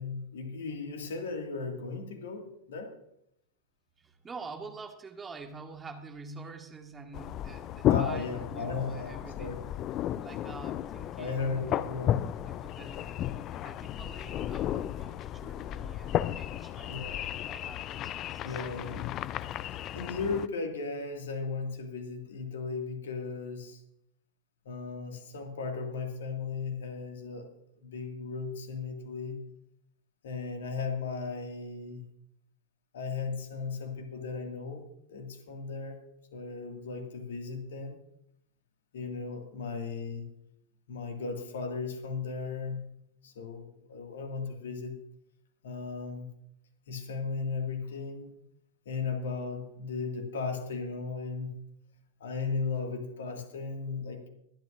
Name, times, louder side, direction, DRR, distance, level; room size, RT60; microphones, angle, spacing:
voice 1, 0.0-2.9 7.9-9.7 11.2-12.2 16.9-17.2 18.4-19.1 19.9-23.8 24.6-27.5 27.8-29.4 30.2-32.0 32.9-36.0 36.3-38.0 38.9-40.3 40.9-42.8 43.2-45.0 45.6-46.3 46.9-48.3 48.9-51.5 52.2-54.2, left 4 dB, 60° left, 4 dB, 2.1 m, -36 dB
voice 2, 4.0-9.6 10.2-12.1 12.5-17.1 17.5-18.6, right 4 dB, 15° right, 4 dB, 1.7 m, -47 dB
sound 1, 7.1-20.5, left 12 dB, 35° left, 0.4 m, -33 dB
23.5 x 11.0 x 2.6 m, 0.76 s
figure-of-eight pair, 90°, 0 cm